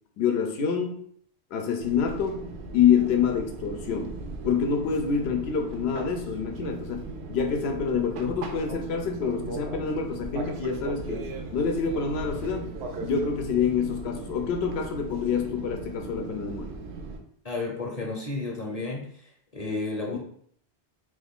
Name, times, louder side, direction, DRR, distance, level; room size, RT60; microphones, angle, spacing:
voice 1, 0.2-1.0 1.5-2.5 2.7-4.2 4.4-7.0 7.3-11.2 11.5-12.7 13.0-16.7 19.7-19.8 20.1-20.2, left 6 dB, 80° left, 4 dB, 0.8 m, -26 dB
Fixed-wing aircraft airplane, 1.8-17.2, right 3 dB, 85° right, 0.8 m, -38 dB
voice 2, 17.4-20.2, left 3 dB, 40° left, -1 dB, 0.8 m, -32 dB
3.0 x 2.3 x 3.6 m, 0.63 s
omnidirectional pair, 1.1 m